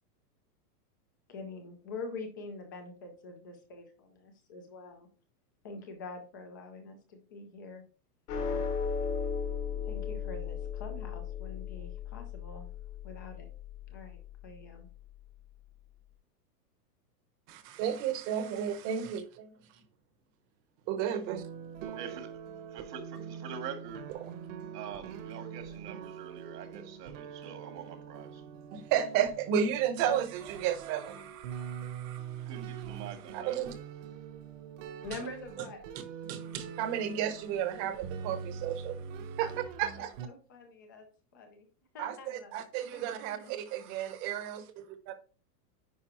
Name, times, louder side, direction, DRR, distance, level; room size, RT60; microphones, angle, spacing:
voice 1, 1.3-5.1 5.6-7.8 9.8-12.7 13.0-13.5 13.9-14.9 35.0-35.8 39.4-41.1 41.3-41.7 41.9-43.6, left 3 dB, 15° left, 0.4 m, -45 dB
sound 1, 8.3-14.8, left 6 dB, 70° left, 2.5 m, -36 dB
voice 2, 17.5-19.5 20.9-21.4 21.8-22.0 28.7-32.5 33.3-33.7 36.3-39.0 39.4-39.5 39.8-40.1 42.0-43.6 43.9-45.1, right 9 dB, 25° right, 0.8 m, -33 dB
sound 2, 21.3-40.3, right 7 dB, 50° right, 1.1 m, -44 dB
voice 3, 22.0-22.4 22.7-24.1 24.7-28.4 32.4-33.7, right 7 dB, 75° right, 1.9 m, -44 dB
9.5 x 4.8 x 3.0 m
supercardioid pair, 155°, 48 cm